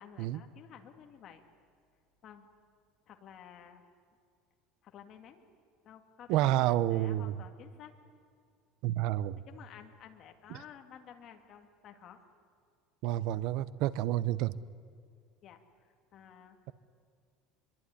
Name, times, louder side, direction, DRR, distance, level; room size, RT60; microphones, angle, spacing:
voice 1, 0.0-1.4 2.2-2.5 3.1-3.8 4.8-5.4 5.8-7.9 9.4-12.2 15.4-16.6, left 8 dB, 35° left, 5 dB, 2.5 m, -53 dB
voice 2, 6.3-7.3 8.8-9.4 13.0-14.6, right 14 dB, 55° right, 18 dB, 0.7 m, -29 dB
25.5 x 23.0 x 9.9 m, 2.2 s
cardioid pair, 165°, 0 cm